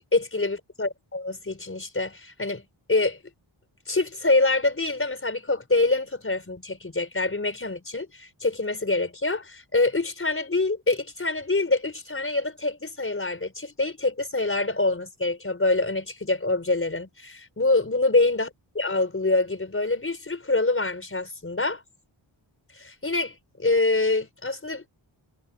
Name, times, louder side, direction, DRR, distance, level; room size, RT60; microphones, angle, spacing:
voice 1, 0.0-2.6 2.9-3.2 3.9-18.5 18.7-21.8 22.8-24.8, left 2 dB, 25° left, 4.8 m, -25 dB
wide cardioid pair, 120°, 47 cm